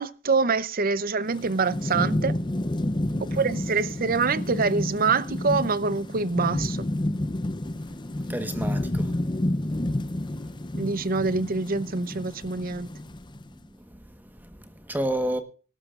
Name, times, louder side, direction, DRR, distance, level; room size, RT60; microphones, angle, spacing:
voice 1, 0.0-2.4 3.2-6.9 10.7-12.9, right 4 dB, 45° right, 0.7 m, -25 dB
Thunderstorm / Rain, 1.3-13.5, left 1 dB, 25° left, 0.6 m, -30 dB
voice 2, 8.3-9.1 13.8-15.4, right 1 dB, 10° right, 1.2 m, -31 dB
24.5 x 12.5 x 2.5 m
head